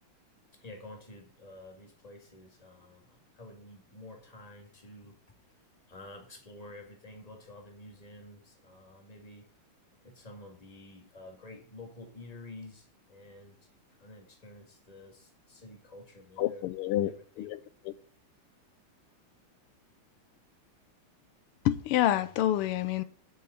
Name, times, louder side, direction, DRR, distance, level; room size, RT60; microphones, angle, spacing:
voice 1, 0.6-5.2 5.9-9.5 10.0-13.6 14.0-17.5, left 2 dB, 20° left, 2.0 m, -50 dB
voice 2, 16.4-17.1 17.4-17.9 21.6-23.0, left 13 dB, 90° left, 1.6 m, -28 dB
6.8 x 6.5 x 7.5 m
omnidirectional pair, 2.4 m